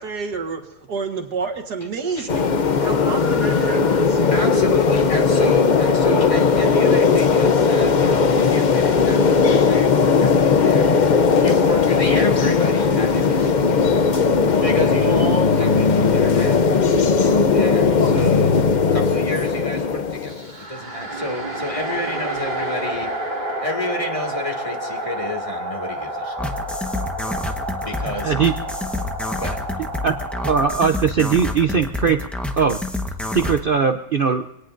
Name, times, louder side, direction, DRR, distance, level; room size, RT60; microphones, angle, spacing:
voice 1, 0.0-2.5 2.8-4.4, right 5 dB, 65° right, 3 dB, 2.2 m, -29 dB
sound 1, 2.3-20.5, left 5 dB, 55° left, 0.5 m, -17 dB
voice 2, 4.3-11.1 11.4-13.6 14.6-16.9 17.5-23.1 23.6-26.4 27.8-28.3 29.4-29.6, left 2 dB, 20° left, 3 dB, 2.3 m, -30 dB
sound 2, 20.2-30.7, right 1 dB, 25° right, 1.9 m, -29 dB
sound 3, 26.4-33.6, left 2 dB, ahead, 0.8 m, -28 dB
voice 3, 30.4-32.2 32.6-32.8 33.3-34.5, right 6 dB, 85° right, 7 dB, 0.4 m, -19 dB
25.0 x 18.0 x 2.6 m, 0.90 s
omnidirectional pair, 1.9 m